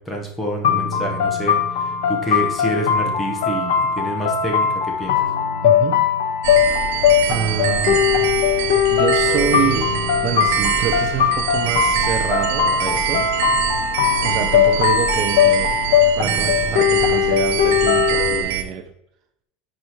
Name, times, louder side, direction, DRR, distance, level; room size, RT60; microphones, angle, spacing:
voice 1, 0.0-5.2, right 1 dB, 10° left, 0 dB, 1.2 m, -27 dB
sound 1, 0.6-18.4, left 8 dB, 85° left, 1.2 m, -19 dB
voice 2, 5.6-6.0 7.3-8.1 8.9-9.9 10.2-13.2 14.2-15.8 16.2-18.8, right 8 dB, 35° right, 6 dB, 0.5 m, -26 dB
sound 2, 6.4-18.6, right 9 dB, 75° right, 0.8 m, -24 dB
9.7 x 4.9 x 3.1 m, 0.75 s
supercardioid pair, 170°, 0 cm